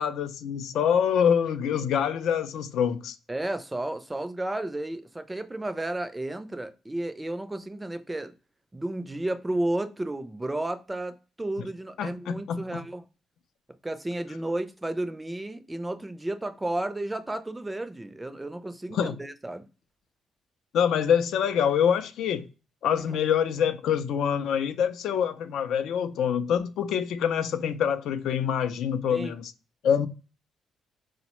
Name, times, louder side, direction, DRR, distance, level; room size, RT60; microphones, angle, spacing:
voice 1, 0.0-3.2 12.0-12.8 18.9-19.1 20.7-22.4 22.8-29.5 29.8-30.1, left 8 dB, 80° left, 0.3 m, -25 dB
voice 2, 3.3-8.3 8.7-13.0 13.8-19.7 29.1-29.4, right 1 dB, 15° right, 0.4 m, -32 dB
3.8 x 2.1 x 2.9 m
cardioid pair, 90°, 0 cm